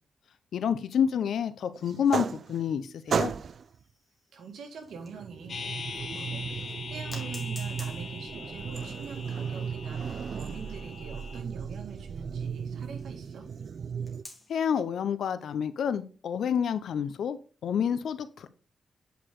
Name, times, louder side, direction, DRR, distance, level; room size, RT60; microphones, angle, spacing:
voice 1, 0.5-3.3 14.5-17.4 17.6-18.5, left 8 dB, 75° left, 13 dB, 0.7 m, -28 dB
sound 1, 1.9-2.8 3.1-3.7 4.9-14.2, right 6 dB, 55° right, 0.3 m, -35 dB
sound 2, 2.5-5.4 5.9-6.0 7.1-13.1 14.0-14.7, left 1 dB, 10° left, 2.0 m, -52 dB
voice 2, 4.3-5.6 6.0-13.4, right 5 dB, 85° right, 5 dB, 1.7 m, -45 dB
sound 3, 5.5-11.4, left 5 dB, 55° left, 0.9 m, -42 dB
8.4 x 4.8 x 3.8 m, 0.36 s
wide cardioid pair, 125°, 0 cm